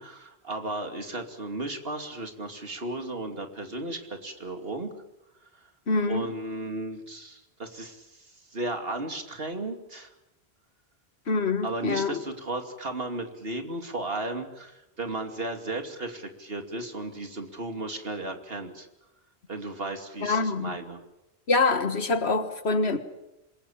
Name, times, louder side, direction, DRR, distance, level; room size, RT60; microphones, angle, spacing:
voice 1, 0.0-4.9 5.5-5.7 6.1-10.1 11.6-18.9 19.5-21.0, right 2 dB, 60° right, 5 dB, 2.9 m, -35 dB
voice 2, 5.9-6.3 11.3-12.2 20.2-20.7 21.5-23.0, left 3 dB, 75° left, 10 dB, 1.9 m, -25 dB
26.5 x 22.0 x 8.7 m, 0.94 s
omnidirectional pair, 1.1 m